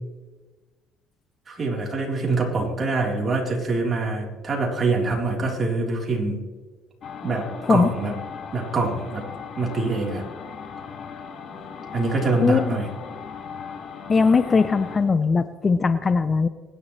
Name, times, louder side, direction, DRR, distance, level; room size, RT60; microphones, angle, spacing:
voice 1, 1.5-6.4 7.2-8.1 8.5-9.2 9.6-10.3 11.9-12.9, right 3 dB, 35° right, -2 dB, 4.0 m, -25 dB
sound 1, 7.0-15.0, left 6 dB, 55° left, 2.2 m, -38 dB
voice 2, 12.4-12.8 14.1-16.5, left 4 dB, 30° left, 12 dB, 0.7 m, -20 dB
24.5 x 10.5 x 3.3 m, 1.3 s
supercardioid pair, 85°, 0 cm